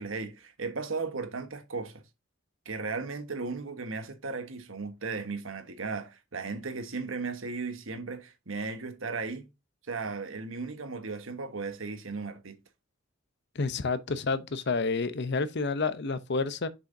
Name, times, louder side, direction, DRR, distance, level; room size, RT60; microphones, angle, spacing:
voice 1, 0.0-2.0 2.6-9.5 9.9-12.6, right 4 dB, 75° right, 1.3 m, -36 dB
voice 2, 13.5-16.7, left 4 dB, 55° left, 0.7 m, -29 dB
6.9 x 5.8 x 2.7 m
head